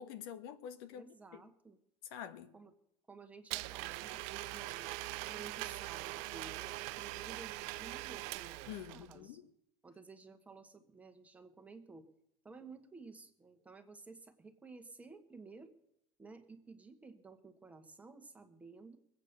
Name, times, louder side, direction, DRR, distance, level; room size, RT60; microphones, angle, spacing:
voice 1, 0.0-1.1 2.1-2.5 8.7-9.4, left 9 dB, 90° left, 1.5 m, -46 dB
voice 2, 0.9-1.8 2.5-2.7 3.1-9.4 9.8-12.1 12.4-15.7 16.2-19.0, right 4 dB, 10° right, 1.4 m, -54 dB
Domestic sounds home sounds, 3.5-9.2, right 20 dB, 65° right, 0.5 m, -42 dB
22.0 x 8.4 x 6.7 m
cardioid pair, 150°, 13 cm